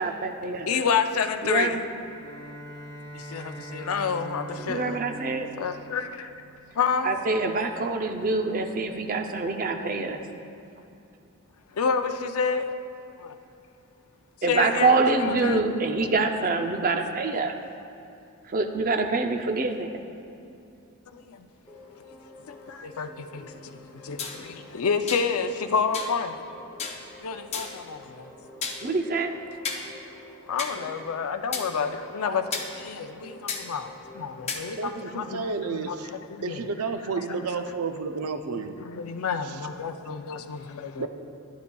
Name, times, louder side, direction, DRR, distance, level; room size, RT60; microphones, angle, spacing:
voice 1, 0.0-0.7 1.4-1.8 4.6-5.7 7.0-10.2 14.4-17.6 18.5-20.0 28.8-29.3, right 3 dB, 40° right, 5 dB, 0.5 m, -25 dB
voice 2, 0.7-1.8 3.1-5.0 5.6-6.3 6.8-7.1 11.7-12.7 13.2-13.4 14.5-15.6 16.0-16.1 21.1-21.5 22.5-26.4 27.2-28.3 30.5-35.4 35.7-36.0 36.3-36.7 38.8-41.1, left 6 dB, 80° left, 8 dB, 0.5 m, -29 dB
Bowed string instrument, 1.9-6.9, equal, 50° left, 1.8 m, -42 dB
sound 1, 21.6-35.5, left 1 dB, 10° left, 1.0 m, -49 dB
sound 2, 24.2-24.4 25.1-25.3 25.9-26.1 26.8-27.0 27.5-27.8 28.6-28.8 29.6-29.8 30.6-30.7 31.5-31.7 32.5-32.7 33.5-33.6 34.5-34.6, left 5 dB, 30° left, 0.6 m, -32 dB
voice 3, 34.7-36.1 36.4-38.8 39.4-39.6 41.0-41.1, right 4 dB, 85° right, 8 dB, 0.5 m, -31 dB
11.0 x 9.4 x 2.3 m, 2.7 s
head